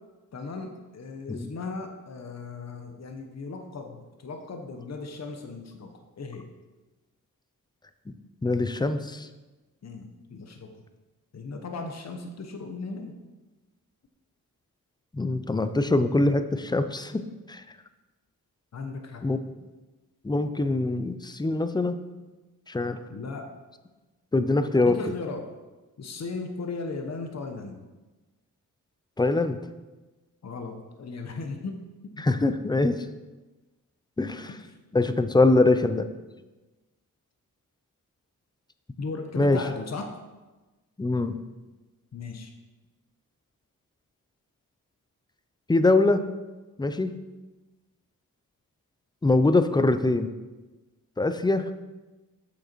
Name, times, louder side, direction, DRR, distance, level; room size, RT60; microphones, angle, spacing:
voice 1, 0.3-5.9 6.2-6.5 9.8-10.7 11.3-13.2 18.7-19.3 23.1-23.5 24.7-25.5 26.0-27.8 30.4-31.9 32.1-32.2 34.5-34.6 35.3-35.7 39.0-40.1 42.1-42.5, left 3 dB, 50° left, 5 dB, 0.9 m, -37 dB
voice 2, 8.4-9.3 15.1-17.2 17.5-17.6 19.2-19.4 20.2-22.0 22.7-23.0 24.3-25.0 29.2-29.6 32.2-33.0 34.2-34.5 34.9-36.1 39.3-39.6 41.0-41.4 45.7-46.2 46.8-47.1 49.2-50.3 51.2-51.7, left 2 dB, 10° left, 10 dB, 0.5 m, -23 dB
8.1 x 6.5 x 4.5 m, 1.2 s
wide cardioid pair, 100°, 35 cm